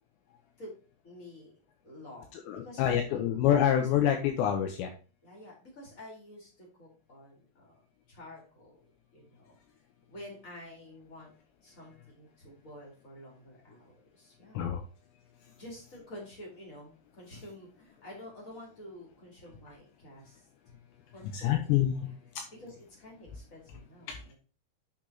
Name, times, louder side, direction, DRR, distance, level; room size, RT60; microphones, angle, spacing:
voice 1, 1.0-1.5 1.8-2.3 2.6-3.4 3.8-3.9 5.2-7.8 8.1-8.8 9.1-9.6 10.1-11.3 11.6-14.6 15.6-20.4 21.1-22.2 22.6-24.3, left 1 dB, 15° left, -3 dB, 4.0 m, -49 dB
voice 2, 2.3-4.9 14.5-14.8 21.3-22.1 24.1-24.2, left 10 dB, 75° left, 4 dB, 3.0 m, -27 dB
9.0 x 6.0 x 2.9 m, 0.37 s
omnidirectional pair, 5.5 m